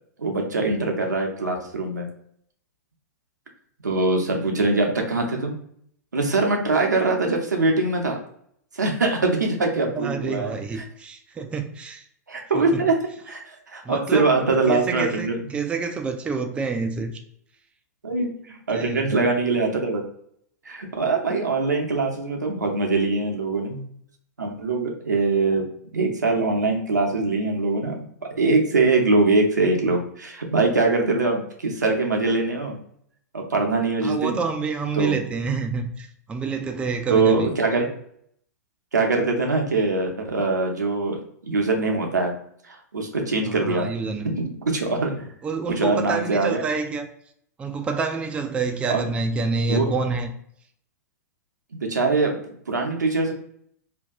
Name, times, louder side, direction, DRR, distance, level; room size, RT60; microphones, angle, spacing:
voice 1, 0.2-2.1 3.8-5.5 6.1-8.2 8.7-10.6 12.3-12.9 13.3-15.4 18.0-20.0 20.6-23.8 24.4-25.6 25.9-28.1 28.4-32.8 33.3-34.4 34.9-35.3 37.1-37.9 38.9-42.3 42.7-43.9 44.2-45.3 45.7-46.6 48.9-49.1 49.7-49.9 51.7-52.4 52.7-53.3, right 3 dB, 90° right, 2 dB, 0.7 m, -23 dB
voice 2, 9.7-12.0 12.5-12.8 13.8-14.3 14.7-17.1 18.7-19.2 34.0-37.5 43.5-44.3 45.4-47.1 47.6-50.3, right 4 dB, 10° right, 5 dB, 0.3 m, -28 dB
2.7 x 2.2 x 3.4 m, 0.67 s
hypercardioid pair, 105°, 9 cm